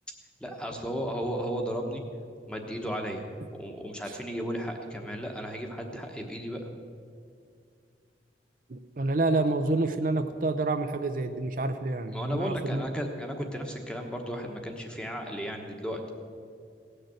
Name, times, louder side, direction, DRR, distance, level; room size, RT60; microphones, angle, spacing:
voice 1, 0.4-2.0 2.5-3.3 3.6-6.8 12.1-16.0, equal, 5° left, 3 dB, 1.1 m, -34 dB
voice 2, 8.7-12.8, right 2 dB, 50° right, 8 dB, 0.5 m, -28 dB
17.5 x 6.6 x 7.8 m, 2.3 s
head